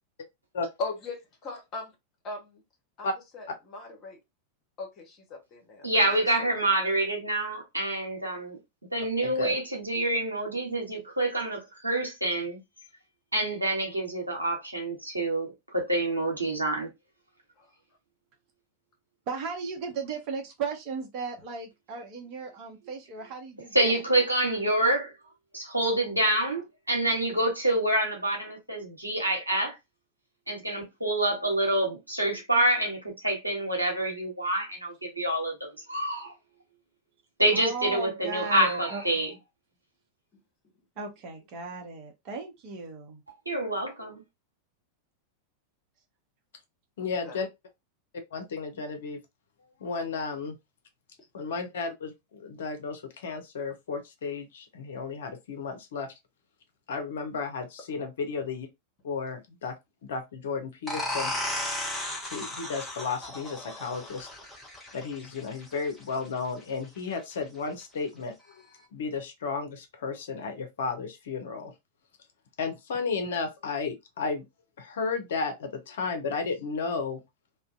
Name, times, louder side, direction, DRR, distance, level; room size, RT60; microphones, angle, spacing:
voice 1, 0.8-1.9 2.2-2.6 3.0-3.1 3.3-4.2 4.8-5.9 6.4-6.5 47.0-47.4, left 3 dB, 35° left, 1.0 m, -39 dB
voice 2, 5.8-8.6 8.9-12.6 13.3-16.9 23.7-25.1 25.5-29.8 30.5-36.3 37.4-39.3 43.5-44.2, right 1 dB, 85° right, 0.9 m, -27 dB
voice 3, 9.2-9.5 47.0-47.5 48.3-49.2 49.8-50.5 51.3-52.1 52.4-56.1 56.9-58.7 59.0-59.7 60.0-61.3 62.3-64.3 64.9-68.3 68.9-71.7 72.6-74.4 74.8-77.2, left 4 dB, 60° left, 0.6 m, -33 dB
voice 4, 19.3-24.0 37.5-39.0 41.0-43.2, right 4 dB, 40° right, 0.8 m, -36 dB
sound 1, 60.9-66.3, left 1 dB, 5° left, 0.8 m, -35 dB
2.4 x 2.1 x 2.4 m
figure-of-eight pair, 90°, 0 cm